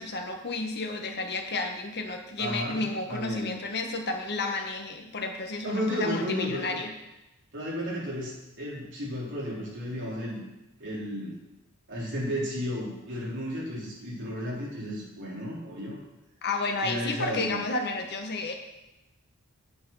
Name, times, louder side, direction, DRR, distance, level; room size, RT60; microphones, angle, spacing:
voice 1, 0.0-6.9 16.4-18.5, left 3 dB, 50° left, 3 dB, 1.5 m, -31 dB
voice 2, 2.4-2.8 3.1-3.6 5.6-6.8 7.5-10.4 10.8-11.4 11.9-16.0 16.8-17.6, equal, 55° right, -5 dB, 4.2 m, -33 dB
9.4 x 8.8 x 5.7 m, 0.96 s
head